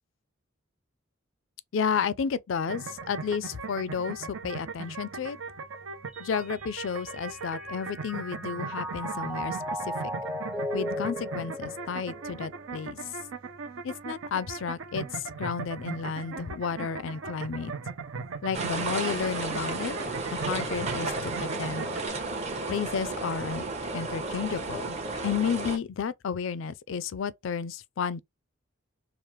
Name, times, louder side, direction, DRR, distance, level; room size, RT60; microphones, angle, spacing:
voice 1, 1.7-5.4 6.2-9.6 9.9-10.0 10.7-13.0 13.8-17.7 18.4-19.9 20.3-21.9 22.7-23.6 23.9-25.0 25.2-28.2, left 6 dB, 65° left, 0.4 m, -32 dB
sound 1, 2.7-22.1, right 5 dB, 80° right, 0.6 m, -39 dB
Mallet percussion, 6.1-12.6, equal, 5° right, 0.4 m, -36 dB
sound 2, 18.5-25.8, right 3 dB, 35° right, 0.8 m, -33 dB
4.6 x 2.0 x 3.0 m
head